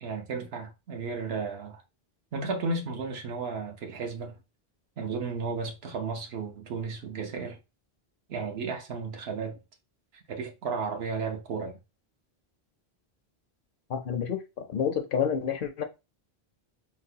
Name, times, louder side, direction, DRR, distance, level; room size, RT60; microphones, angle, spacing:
voice 1, 0.0-1.8 2.3-4.4 5.0-7.6 8.3-9.6 10.1-11.8, right 4 dB, 75° right, 1.0 m, -34 dB
voice 2, 13.9-15.8, left 7 dB, 65° left, 0.7 m, -29 dB
4.0 x 2.1 x 2.7 m
omnidirectional pair, 1.1 m